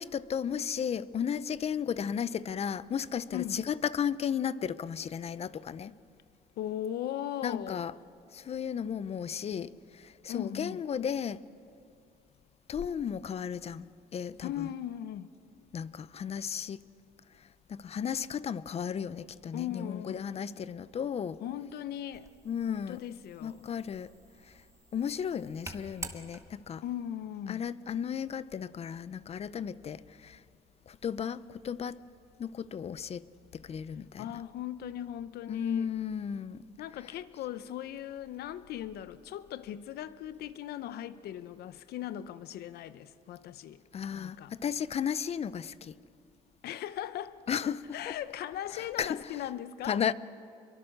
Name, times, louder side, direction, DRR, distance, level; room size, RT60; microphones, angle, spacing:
voice 1, 0.0-5.9 7.4-7.9 8.3-9.7 10.2-11.4 12.7-13.9 14.1-14.7 15.7-16.8 17.7-21.4 22.5-23.0 23.4-24.1 24.9-26.8 27.5-30.4 30.9-32.0 32.4-33.2 33.5-34.3 35.5-36.6 43.9-45.9 47.5-48.1 48.7-49.2 49.9-50.1, left 8 dB, 40° left, 0.6 m, -34 dB
voice 2, 3.3-3.6 6.6-7.9 10.3-10.8 14.4-15.3 19.5-20.2 21.4-22.3 22.7-23.7 26.8-27.6 34.2-35.9 36.8-43.8 44.1-44.6 46.6-47.4 47.9-50.1, left 11 dB, 70° left, 0.9 m, -38 dB
sound 1, 22.1-26.8, right 2 dB, 20° right, 1.6 m, -48 dB
26.5 x 23.0 x 6.6 m
cardioid pair, 110°, 17 cm